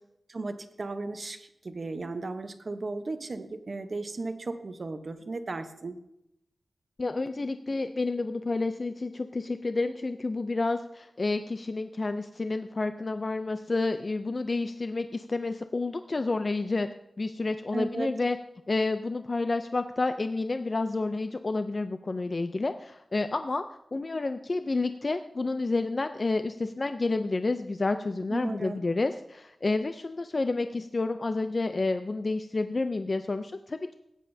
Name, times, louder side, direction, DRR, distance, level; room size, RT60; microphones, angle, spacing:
voice 1, 0.3-6.0 17.7-18.1 28.3-28.8, right 3 dB, 50° right, 8 dB, 0.9 m, -35 dB
voice 2, 7.0-16.9 17.2-18.4 18.7-23.6 23.9-33.9, left 3 dB, 40° left, 9 dB, 0.4 m, -30 dB
16.0 x 9.8 x 2.7 m, 0.83 s
wide cardioid pair, 100°, 0 cm